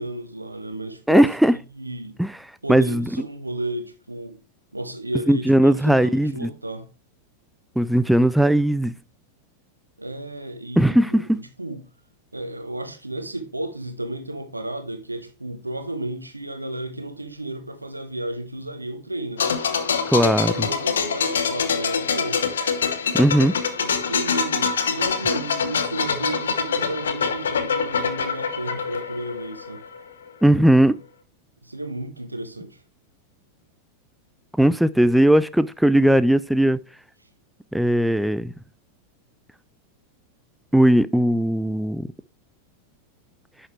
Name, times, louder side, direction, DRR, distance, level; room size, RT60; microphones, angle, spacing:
voice 1, 0.0-1.3 1.8-2.2 2.6-4.4 4.7-6.9 10.0-11.8 12.3-19.5 20.4-22.4 23.8-29.8 31.6-32.8, right 1 dB, 85° right, 1.1 m, -33 dB
voice 2, 1.1-1.5 2.2-2.3 2.7-3.0 5.3-6.5 7.8-8.9 10.8-11.4 20.1-20.6 23.1-23.5 30.4-31.0 34.6-36.8 37.7-38.5 40.7-42.1, right 1 dB, ahead, 0.4 m, -18 dB
sound 1, 19.4-30.0 30.3-30.5, left 6 dB, 65° left, 0.9 m, -25 dB
10.5 x 5.7 x 3.2 m
figure-of-eight pair, 90°, 0 cm